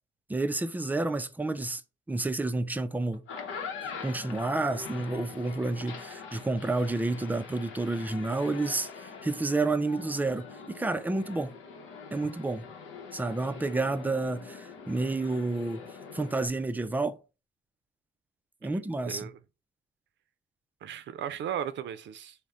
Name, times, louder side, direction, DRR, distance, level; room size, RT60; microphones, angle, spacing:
voice 1, 0.3-1.8 2.1-3.2 3.8-11.5 12.1-12.6 13.1-15.8 16.1-17.2 18.6-19.3, right 2 dB, 10° right, 0.3 m, -30 dB
sound 1, 3.1-16.5, left 5 dB, 85° left, 0.8 m, -43 dB
voice 2, 19.1-19.4 20.8-22.4, right 9 dB, 65° right, 0.5 m, -36 dB
3.5 x 2.1 x 4.0 m
cardioid pair, 90°, 20 cm